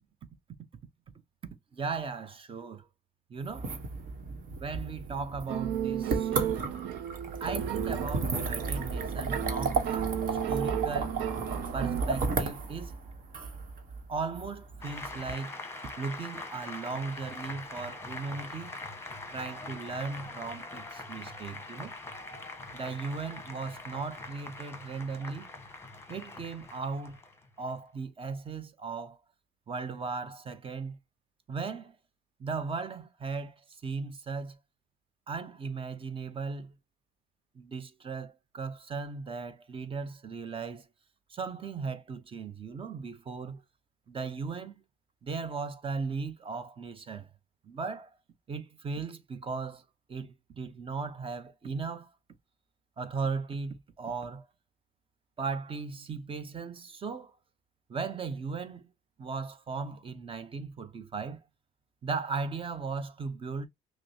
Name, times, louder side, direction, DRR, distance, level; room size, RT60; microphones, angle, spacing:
voice 1, 1.7-2.9 3.3-3.7 4.6-6.6 7.4-11.1 11.7-13.0 14.1-15.5 16.0-18.7 19.3-21.9 22.7-25.5 26.1-27.2 27.6-29.2 29.7-31.0 31.5-32.0 32.4-34.6 35.3-36.8 37.5-40.8 41.3-43.6 44.1-44.8 45.2-47.3 47.6-48.1 48.5-49.8 50.1-52.1 53.0-54.5 55.4-57.3 57.9-58.9 59.2-61.4 62.0-63.7, right 4 dB, 30° right, 0.8 m, -37 dB
sound 1, 3.4-15.3, right 4 dB, 55° right, 1.2 m, -34 dB
sound 2, 5.5-12.0, right 10 dB, 85° right, 0.5 m, -34 dB
Applause, 14.8-27.8, left 2 dB, 15° left, 1.0 m, -43 dB
5.8 x 2.1 x 2.7 m
cardioid pair, 110°, 17 cm